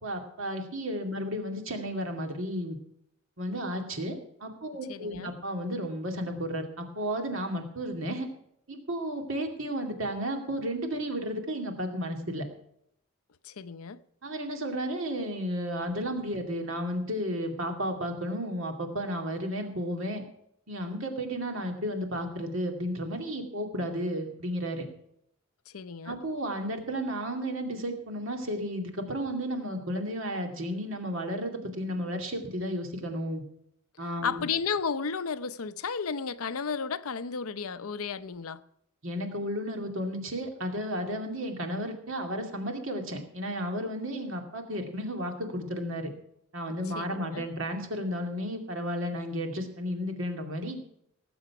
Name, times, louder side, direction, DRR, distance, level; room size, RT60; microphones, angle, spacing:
voice 1, 0.0-2.8 3.4-4.2 4.4-8.3 8.7-12.4 14.2-20.2 20.7-24.8 26.0-33.4 34.0-34.5 39.0-46.1 46.5-50.8, equal, 65° right, 2.4 m, -33 dB
voice 2, 4.9-5.3 13.4-14.0 25.7-26.2 34.2-38.6 46.7-47.5, left 5 dB, 85° left, 0.7 m, -33 dB
18.0 x 7.9 x 5.8 m
head